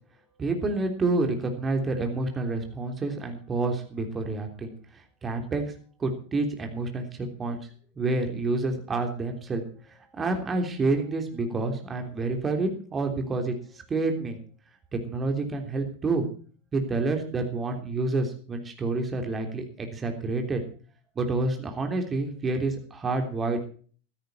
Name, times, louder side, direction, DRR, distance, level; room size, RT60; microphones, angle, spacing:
voice 1, 0.4-4.7 5.2-5.6 6.0-7.6 8.0-9.6 10.1-13.5 13.9-14.4 14.9-16.2 16.7-20.6 21.1-23.6, right 3 dB, 20° right, 5 dB, 3.3 m, -28 dB
15.5 x 13.0 x 4.3 m, 0.43 s
figure-of-eight pair, 90°, 0 cm